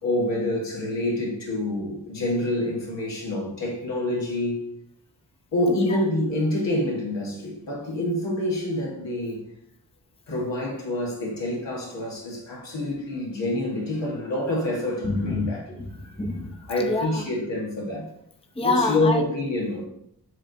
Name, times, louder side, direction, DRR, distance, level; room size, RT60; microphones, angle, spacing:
voice 1, 0.0-4.7 5.5-9.4 10.3-15.7 16.0-16.2 16.7-18.1 18.6-19.9, left 1 dB, 85° left, 1.9 m, -27 dB
voice 2, 5.7-6.0 15.0-17.3 18.6-19.3, left 2 dB, 15° left, 0.7 m, -28 dB
7.1 x 3.4 x 4.0 m
cardioid pair, 50°, 43 cm